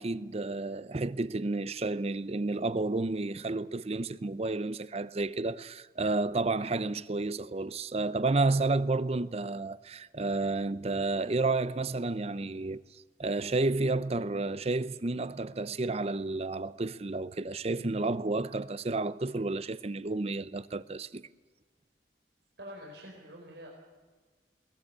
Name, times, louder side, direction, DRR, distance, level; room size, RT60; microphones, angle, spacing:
voice 1, 0.0-21.3, right 3 dB, 35° right, 0.6 m, -31 dB
voice 2, 22.6-23.7, equal, 80° right, 4.6 m, -46 dB
22.0 x 18.5 x 8.6 m
head